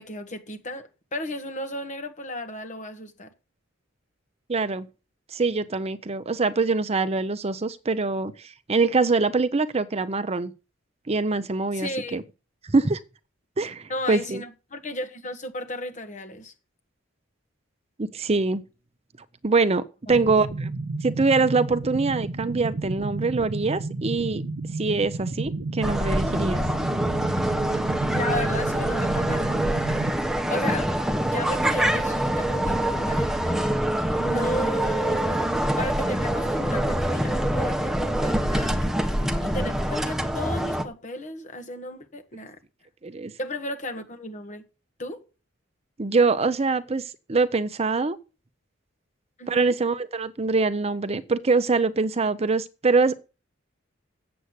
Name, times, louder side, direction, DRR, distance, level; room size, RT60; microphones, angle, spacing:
voice 1, 0.0-3.3 11.7-12.2 13.9-16.5 20.1-20.3 27.9-30.0 30.5-31.0 31.2-33.4 34.2-42.6 43.4-44.6 45.0-45.2 49.4-49.7, left 1 dB, 40° left, 1.7 m, -34 dB
voice 2, 4.5-4.9 5.3-10.5 11.1-12.2 12.6-13.0 13.6-14.4 18.0-18.6 19.4-20.7 21.0-24.4 24.8-26.6 43.0-43.3 46.0-48.2 49.5-53.1, right 3 dB, 30° right, 0.7 m, -24 dB
sound 1, 20.1-30.1, right 3 dB, 70° right, 0.7 m, -32 dB
sound 2, 25.8-40.8, right 1 dB, ahead, 1.0 m, -25 dB
8.0 x 7.8 x 8.0 m
head